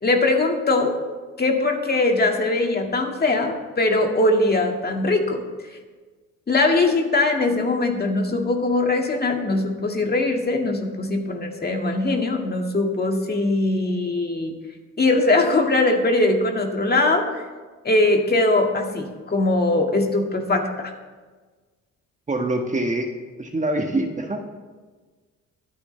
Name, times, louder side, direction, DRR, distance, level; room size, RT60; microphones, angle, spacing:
voice 1, 0.0-1.0 1.4-5.4 6.5-14.5 15.0-17.4 17.8-20.9, left 2 dB, 30° left, 2 dB, 2.0 m, -21 dB
voice 2, 22.3-23.1 23.4-24.4, right 2 dB, 25° right, 3 dB, 1.4 m, -24 dB
23.5 x 9.5 x 3.3 m, 1.4 s
cardioid pair, 90°, 30 cm